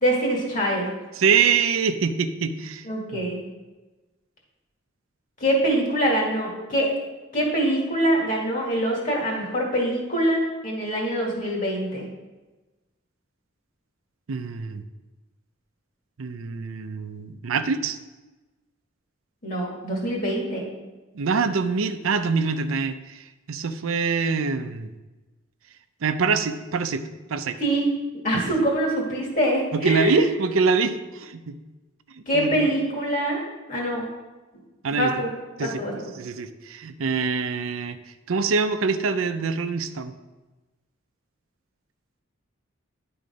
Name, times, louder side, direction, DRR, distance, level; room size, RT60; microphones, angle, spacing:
voice 1, 0.0-0.9 2.8-3.4 5.4-6.9 7.3-12.0 19.4-20.7 27.6-27.9 28.2-30.2 32.3-33.4 33.7-34.1 34.9-35.3 35.6-36.1, right 1 dB, 40° left, -2 dB, 2.1 m, -24 dB
voice 2, 1.2-2.9 3.1-3.2 14.3-14.8 16.2-18.0 21.1-24.9 26.0-27.0 27.3-27.6 28.5-28.6 29.7-31.6 32.3-32.7 34.8-35.1 35.6-38.0 38.3-40.1, right 5 dB, 90° right, 9 dB, 0.5 m, -25 dB
11.0 x 3.9 x 5.2 m, 1.2 s
head